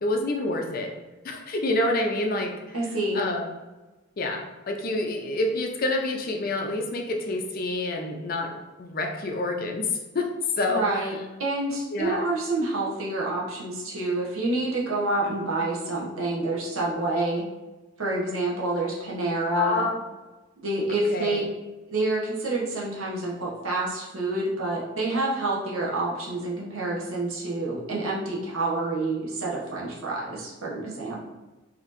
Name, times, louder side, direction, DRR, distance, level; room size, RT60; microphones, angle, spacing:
voice 1, 0.0-0.9 1.2-2.8 3.1-3.5 4.2-10.3 10.6-11.1 11.9-12.2 19.6-20.0 20.9-21.4, left 2 dB, 45° left, 3 dB, 0.5 m, -28 dB
voice 2, 2.7-3.2 10.7-17.4 18.0-19.9 20.6-21.4 21.9-31.2, right 2 dB, 85° right, -4 dB, 1.0 m, -28 dB
4.2 x 2.8 x 2.6 m, 1.1 s
head